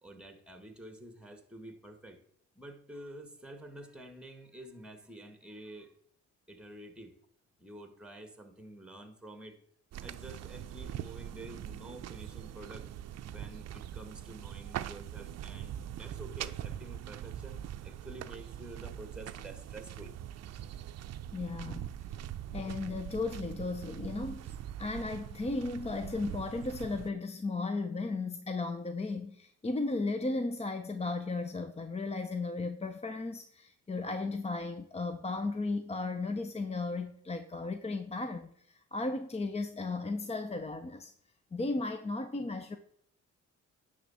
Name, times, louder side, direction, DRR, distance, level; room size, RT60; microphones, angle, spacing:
voice 1, 0.0-2.2 2.5-5.9 6.5-7.1 7.6-9.6 10.0-12.9 13.2-20.1, right 1 dB, 5° right, 1.7 m, -49 dB
sound 1, 9.9-27.1, right 11 dB, 60° right, 0.6 m, -42 dB
voice 2, 21.3-22.2 22.5-41.1 41.5-42.8, left 3 dB, 20° left, 0.7 m, -35 dB
10.0 x 3.8 x 7.0 m
cardioid pair, 90°, 30 cm